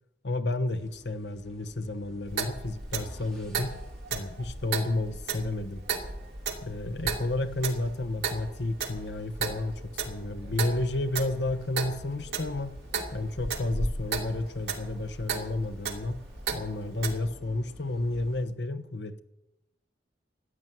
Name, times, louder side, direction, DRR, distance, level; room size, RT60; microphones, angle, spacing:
voice 1, 0.2-3.8 4.1-5.8 6.6-12.8 13.1-19.2, left 2 dB, 75° left, 1.1 m, -31 dB
sound 1, 0.8-18.5, equal, 5° left, 3.1 m, -45 dB
Clock, 2.3-17.2, right 5 dB, 80° right, 2.5 m, -36 dB
14.5 x 9.4 x 9.2 m
head